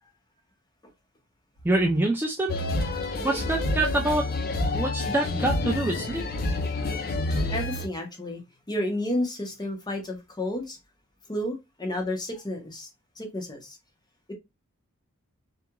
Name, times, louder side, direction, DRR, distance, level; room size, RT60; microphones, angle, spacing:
voice 1, 1.6-2.6 3.2-4.3 4.7-6.2, right 2 dB, 10° right, 0.3 m, -25 dB
sound 1, 2.5-7.9, left 2 dB, 45° left, 0.5 m, -28 dB
voice 2, 7.5-8.4 8.7-10.8 11.3-12.9 13.2-13.8 14.3-14.4, left 1 dB, 20° left, 0.8 m, -31 dB
2.8 x 2.4 x 2.2 m
head